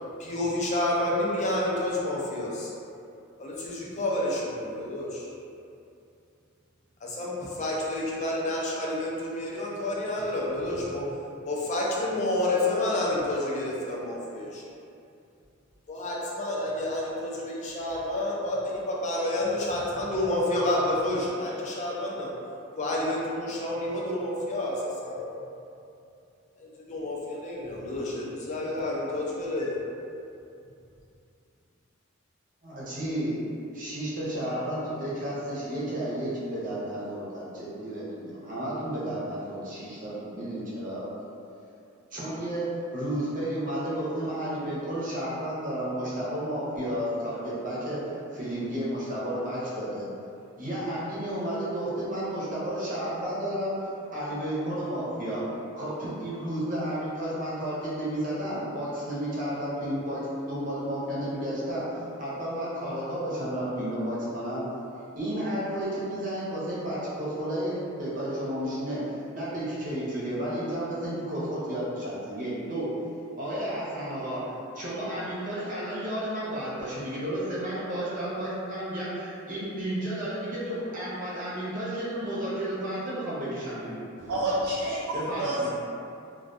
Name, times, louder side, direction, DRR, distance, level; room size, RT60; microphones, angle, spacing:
voice 1, 0.2-2.7 3.4-5.3 7.0-11.2 11.5-14.6 15.9-22.3 22.8-25.3 26.6-29.8, left 1 dB, 35° left, -4 dB, 0.4 m, -29 dB
voice 2, 32.6-41.1 42.1-50.1 50.6-53.8 54.1-55.5 55.7-64.7 65.2-72.9 73.4-84.0 85.1-85.7, right 1 dB, 40° right, -8 dB, 0.7 m, -32 dB
voice 3, 84.2-85.7, right 1 dB, 90° right, -8 dB, 0.4 m, -29 dB
2.3 x 2.2 x 2.5 m, 2.6 s
head